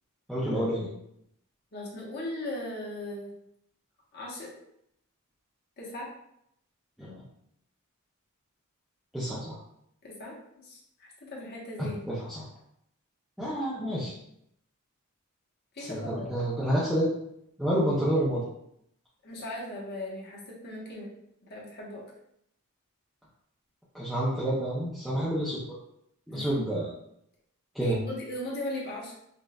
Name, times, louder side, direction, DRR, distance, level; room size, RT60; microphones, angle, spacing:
voice 1, 0.3-0.9 7.0-7.2 9.1-9.6 12.1-12.4 13.4-14.1 15.8-17.1 17.6-18.5 23.9-25.6 26.3-27.0 27.7-28.0, right 1 dB, ahead, -9 dB, 0.6 m, -29 dB
voice 2, 1.7-3.3 4.1-4.5 5.8-6.1 10.0-12.2 15.7-16.3 19.2-21.1 21.4-22.0 26.3-26.6 27.8-29.1, left 1 dB, 45° left, -4 dB, 1.1 m, -38 dB
5.2 x 2.4 x 2.3 m, 0.75 s
head